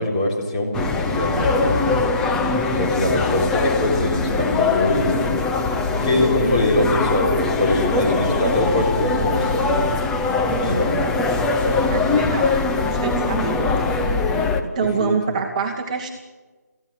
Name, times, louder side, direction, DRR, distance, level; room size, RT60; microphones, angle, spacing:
voice 1, 0.0-2.0 2.7-5.3 5.9-10.0 10.6-11.0 11.6-12.2 15.0-15.2, left 1 dB, 20° left, -1 dB, 3.7 m, -23 dB
sound 1, 0.7-14.6, left 3 dB, 5° left, 0.6 m, -21 dB
voice 2, 11.9-12.5 12.8-13.6 14.6-16.1, right 5 dB, 25° right, 2 dB, 1.4 m, -25 dB
18.5 x 15.5 x 9.4 m, 1.3 s
figure-of-eight pair, 160°, 9 cm